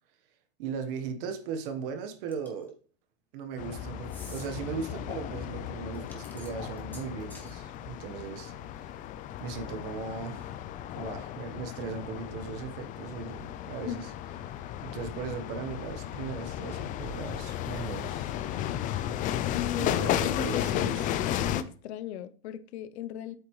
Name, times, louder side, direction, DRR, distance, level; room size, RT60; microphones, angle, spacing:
voice 1, 0.6-2.7 3.3-8.9 9.4-10.5 10.9-14.1 14.5-18.3 19.8-21.1, right 6 dB, 55° right, 1.4 m, -38 dB
sound 1, 2.3-2.7 4.0-4.5 5.9-7.5, left 2 dB, 5° left, 1.8 m, -49 dB
sound 2, 3.6-21.6, left 11 dB, 25° left, 0.4 m, -34 dB
voice 2, 19.5-20.9 21.5-23.4, left 10 dB, 75° left, 0.8 m, -36 dB
8.5 x 7.4 x 3.2 m
supercardioid pair, 135°, 33 cm